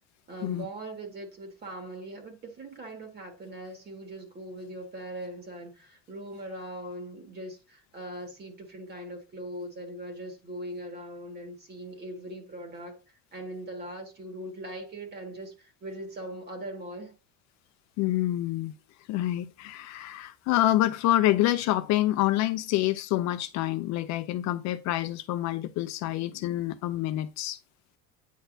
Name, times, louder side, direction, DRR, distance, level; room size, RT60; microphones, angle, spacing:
voice 1, 0.3-17.2, right 1 dB, 35° right, 1.9 m, -40 dB
voice 2, 18.0-18.7 19.1-27.6, left 14 dB, 60° left, 0.6 m, -27 dB
9.2 x 4.1 x 2.6 m
supercardioid pair, 115°, 31 cm